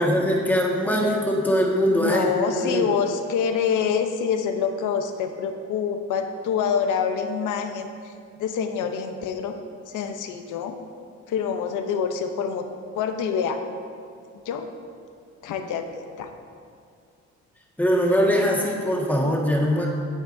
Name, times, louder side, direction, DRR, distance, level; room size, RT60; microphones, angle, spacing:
voice 1, 0.0-2.3 2.6-2.9 17.8-19.9, equal, 5° left, -2 dB, 1.6 m, -21 dB
voice 2, 2.0-8.1 8.4-9.6 9.9-10.7 11.3-12.7 13.0-13.6 14.5-14.7 15.4-15.9 16.2-16.3, left 7 dB, 80° left, 7 dB, 0.8 m, -26 dB
10.5 x 8.0 x 2.7 m, 2.4 s
cardioid pair, 90°, 30 cm